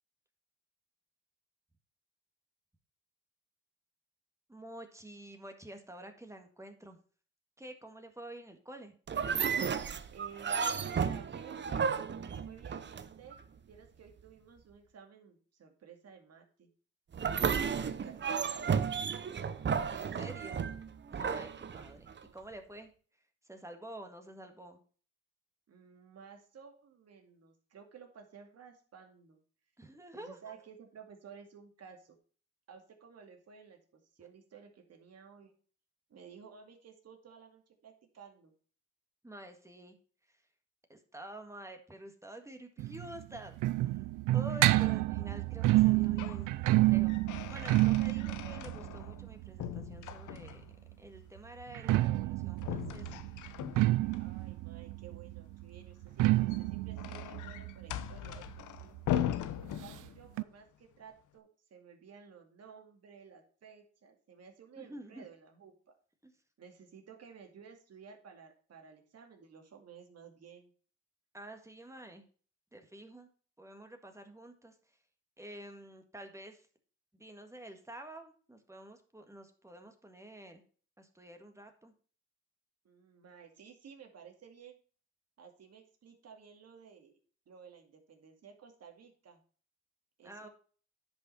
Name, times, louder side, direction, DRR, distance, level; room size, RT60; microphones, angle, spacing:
voice 1, 4.5-7.0 7.6-9.0 19.8-20.6 21.1-22.9 23.4-24.8 29.8-30.6 34.2-34.3 39.2-40.0 40.9-43.6 43.8-44.0 44.3-46.5 46.8-50.6 51.0-53.2 64.8-65.3 66.2-66.3 71.3-72.2 72.7-73.3 73.6-74.7 75.4-76.7 77.1-80.6 81.0-81.9 90.2-90.5, right 1 dB, 10° right, 5 dB, 1.8 m, -49 dB
sound 1, 9.1-13.4 17.1-22.2, right 6 dB, 35° right, 0.8 m, -33 dB
voice 2, 10.1-13.4 13.7-16.7 17.7-19.0 25.7-29.4 30.1-32.2 32.7-33.8 34.1-35.5 36.1-38.5 54.2-59.0 59.6-65.7 66.6-70.7 82.8-84.8 85.4-87.2 87.5-89.4 90.2-90.5, right 6 dB, 55° right, 3 dB, 2.4 m, -54 dB
sound 2, 42.8-50.5 51.6-59.0 59.3-59.4 59.6-59.7 60.4-60.5, right 18 dB, 85° right, 0.5 m, -29 dB
sound 3, 45.8-46.5 46.8-49.3 49.6-50.8 52.6-54.2 56.2-60.4, left 11 dB, 80° left, 0.9 m, -39 dB
10.5 x 5.5 x 4.2 m, 0.42 s
cardioid pair, 90°, 30 cm